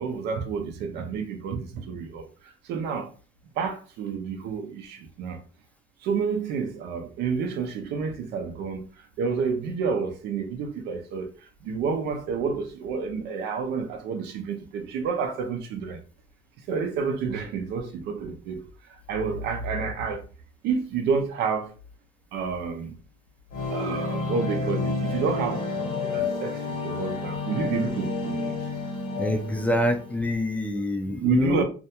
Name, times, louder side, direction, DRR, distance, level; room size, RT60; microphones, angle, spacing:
voice 1, 0.0-1.6 1.9-2.2 2.7-3.1 3.6-5.4 6.1-8.8 9.2-11.3 11.7-16.0 16.7-18.6 19.1-20.2 20.6-21.7 22.3-22.9 23.7-25.6 26.0-26.5 26.8-28.6 31.2-31.6, right 5 dB, 85° right, 0.5 m, -29 dB
sound 1, 23.5-30.4, left 3 dB, 65° left, 0.8 m, -30 dB
voice 2, 29.2-31.6, left 1 dB, 10° left, 0.4 m, -26 dB
2.4 x 2.2 x 2.8 m
cardioid pair, 110°, 17 cm